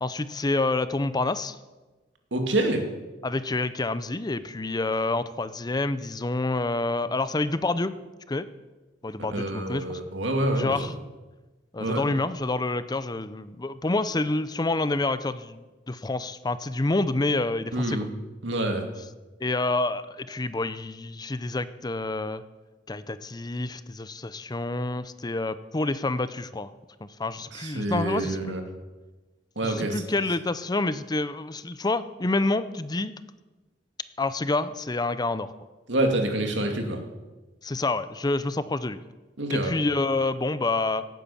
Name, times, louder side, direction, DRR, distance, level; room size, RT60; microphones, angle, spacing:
voice 1, 0.0-1.6 3.2-7.9 8.3-8.5 9.0-10.0 10.6-10.9 11.7-15.6 15.9-18.0 19.4-22.4 22.9-26.7 27.0-28.6 29.6-33.2 34.2-35.5 37.6-39.0 39.5-41.1, left 2 dB, 20° left, 14 dB, 0.6 m, -28 dB
voice 2, 2.3-2.8 9.3-10.8 11.8-12.1 17.7-18.1 18.4-18.8 27.5-28.6 29.6-30.0 35.9-37.0 39.4-39.7, right 1 dB, 75° right, 4 dB, 2.4 m, -27 dB
17.5 x 9.4 x 7.1 m, 1.2 s
head